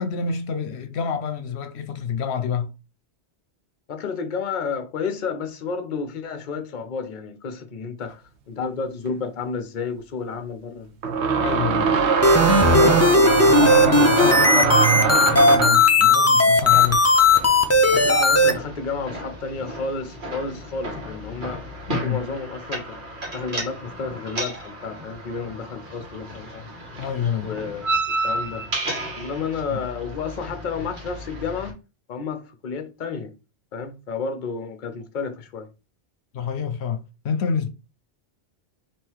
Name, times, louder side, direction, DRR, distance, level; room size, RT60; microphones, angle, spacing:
voice 1, 0.0-2.7 11.4-11.9 12.5-13.1 13.5-17.1 21.9-22.2 27.0-27.6 29.7-29.8 36.3-37.7, left 6 dB, 80° left, 0.9 m, -27 dB
voice 2, 3.9-10.9 11.4-11.5 12.3-13.3 14.0-14.1 18.0-23.0 23.3-26.8 27.4-27.9 28.2-28.6 29.2-31.8 32.1-33.3 33.7-35.7, left 5 dB, 50° left, 0.8 m, -31 dB
sound 1, 9.1-9.2 11.0-15.9, right 6 dB, 85° right, 0.9 m, -21 dB
sound 2, 12.2-18.5, left 2 dB, 25° left, 0.3 m, -16 dB
sound 3, 16.7-31.7, right 1 dB, 50° right, 1.4 m, -33 dB
3.7 x 3.0 x 4.5 m
omnidirectional pair, 1.1 m